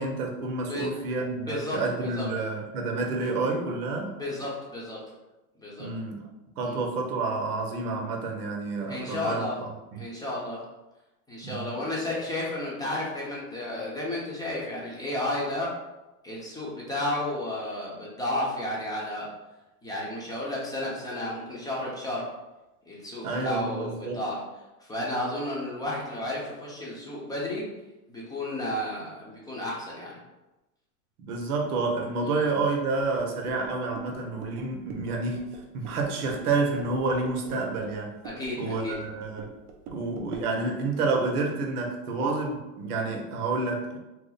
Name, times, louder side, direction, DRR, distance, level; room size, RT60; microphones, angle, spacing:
voice 1, 0.0-4.1 5.8-6.2 6.6-9.5 9.9-10.0 11.4-11.7 23.2-24.2 31.2-35.4 35.7-38.2 38.6-39.5 39.9-44.0, right 3 dB, 75° right, 1 dB, 0.9 m, -29 dB
voice 2, 1.5-1.8 2.2-2.3 4.2-5.0 5.6-5.9 6.6-6.8 8.9-9.6 10.0-10.6 11.3-15.7 16.2-19.3 19.8-22.3 22.9-24.4 24.8-27.7 28.1-30.2 32.2-32.4 38.2-38.9, left 1 dB, 10° left, -5 dB, 0.7 m, -32 dB
sound 1, 33.0-40.6, right 4 dB, 40° right, 0.6 m, -45 dB
3.0 x 2.1 x 3.9 m, 1.0 s
hypercardioid pair, 115°, 45 cm